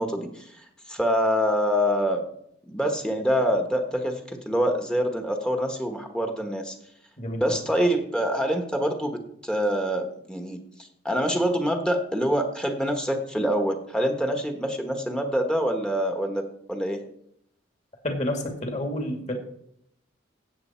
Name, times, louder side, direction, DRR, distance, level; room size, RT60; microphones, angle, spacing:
voice 1, 0.0-2.2 2.7-6.7 7.4-16.4 16.7-17.0, equal, 5° left, 4 dB, 1.3 m, -26 dB
voice 2, 18.0-19.3, left 1 dB, 35° left, 3 dB, 2.5 m, -29 dB
16.5 x 7.8 x 4.5 m, 0.72 s
head